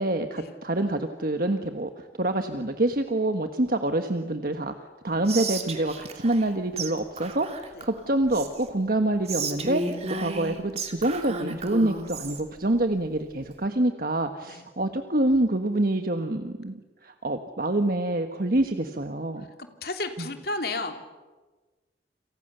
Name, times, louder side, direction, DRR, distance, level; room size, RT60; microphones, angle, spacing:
voice 1, 0.0-4.7 5.0-9.8 10.1-19.4 20.2-20.3, right 1 dB, 55° right, 6 dB, 1.4 m, -26 dB
Whispering, 5.3-6.5 6.8-6.9 7.2-8.7 9.2-12.4, right 3 dB, 35° right, 2.8 m, -33 dB
voice 2, 19.8-20.9, left 2 dB, 60° left, 5 dB, 3.0 m, -32 dB
30.0 x 27.5 x 6.9 m, 1.3 s
head